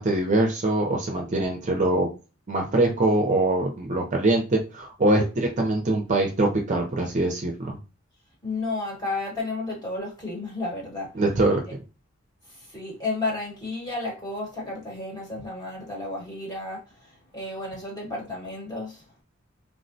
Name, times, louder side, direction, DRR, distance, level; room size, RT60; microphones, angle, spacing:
voice 1, 0.0-2.1 2.5-7.8 11.2-11.8, right 2 dB, 35° right, 0.4 m, -23 dB
voice 2, 8.4-11.2 12.4-19.1, left 2 dB, 20° left, 1.1 m, -32 dB
3.4 x 2.1 x 2.6 m
head